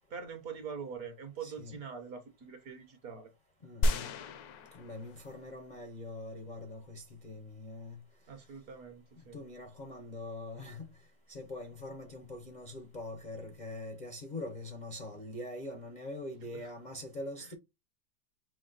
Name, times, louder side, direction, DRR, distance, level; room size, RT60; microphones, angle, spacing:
voice 1, 0.0-3.3 8.3-9.4 17.4-17.5, right 6 dB, 60° right, 1.2 m, -44 dB
voice 2, 1.4-1.8 3.6-4.1 4.7-8.0 9.3-10.9 11.3-17.5, left 2 dB, 50° left, 0.5 m, -43 dB
sound 1, 3.8-5.6 6.1-6.2, left 1 dB, 70° left, 0.9 m, -33 dB
5.1 x 2.2 x 3.8 m
omnidirectional pair, 2.0 m